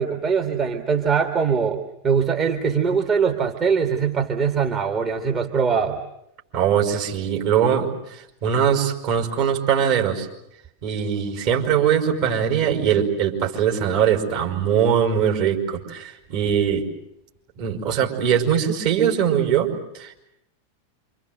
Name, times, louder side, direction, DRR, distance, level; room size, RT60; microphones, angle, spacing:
voice 1, 0.0-1.8 2.0-6.0, right 6 dB, 30° right, 3 dB, 2.3 m, -22 dB
voice 2, 6.5-10.3 10.8-16.9 17.6-20.2, right 8 dB, 50° right, 1 dB, 5.8 m, -21 dB
28.0 x 26.5 x 8.1 m, 0.80 s
figure-of-eight pair, 90°, 0 cm